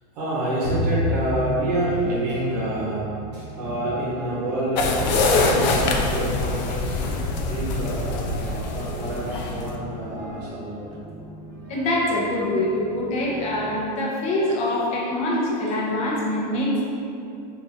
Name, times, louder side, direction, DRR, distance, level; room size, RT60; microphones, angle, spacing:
voice 1, 0.1-7.0 7.4-11.2, right 1 dB, 70° right, -7 dB, 0.9 m, -28 dB
sound 1, 0.6-5.1, equal, 65° left, 1.2 m, -30 dB
sound 2, 2.1-13.8, right 1 dB, 40° right, 0.5 m, -41 dB
sound 3, 4.8-9.7, left 3 dB, 80° left, 0.5 m, -24 dB
voice 2, 11.7-16.8, left 1 dB, 35° left, -4 dB, 0.6 m, -24 dB
3.7 x 2.5 x 2.7 m, 2.7 s
supercardioid pair, 160°, 21 cm